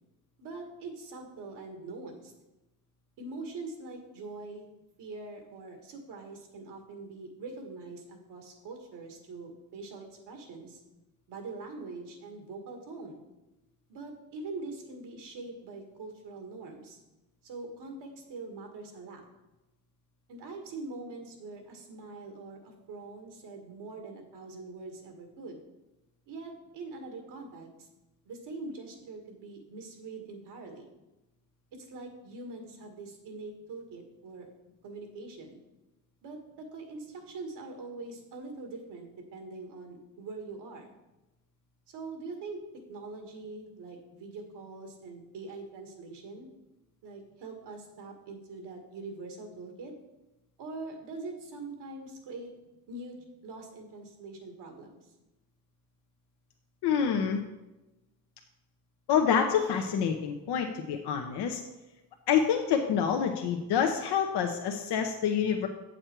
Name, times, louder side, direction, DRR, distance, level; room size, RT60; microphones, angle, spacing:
voice 1, 0.4-2.3 3.2-4.7 5.0-10.8 11.3-13.2 13.9-17.0 17.4-19.2 20.3-25.6 26.3-27.9 28.2-30.9 31.7-34.5 34.8-35.6 36.2-40.9 41.9-46.5 47.0-49.9 50.6-52.5 52.9-55.0, right 3 dB, 80° right, 4 dB, 1.9 m, -43 dB
voice 2, 56.8-57.4 59.1-61.6 62.3-65.7, left 7 dB, 75° left, 3 dB, 0.9 m, -27 dB
7.8 x 6.4 x 4.5 m, 1.0 s
cardioid pair, 80°, 40 cm